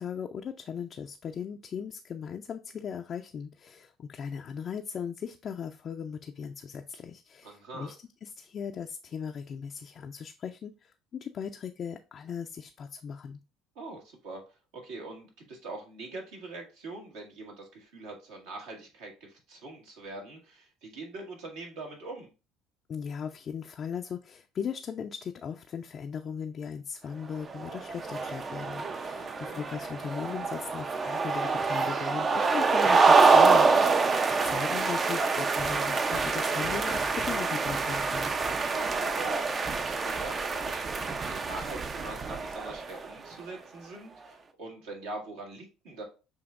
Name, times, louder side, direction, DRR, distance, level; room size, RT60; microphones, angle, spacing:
voice 1, 0.0-8.0 8.2-13.4 22.9-38.3, left 7 dB, 45° left, 4 dB, 0.4 m, -38 dB
voice 2, 7.4-7.9 13.7-14.4 14.7-22.3 29.2-29.6 38.7-39.3 39.7-46.0, right 2 dB, 75° right, 0 dB, 1.6 m, -43 dB
sound 1, 27.5-43.1, right 4 dB, 35° right, 0.5 m, -26 dB
7.0 x 2.8 x 2.4 m, 0.31 s
hypercardioid pair, 65°, 0 cm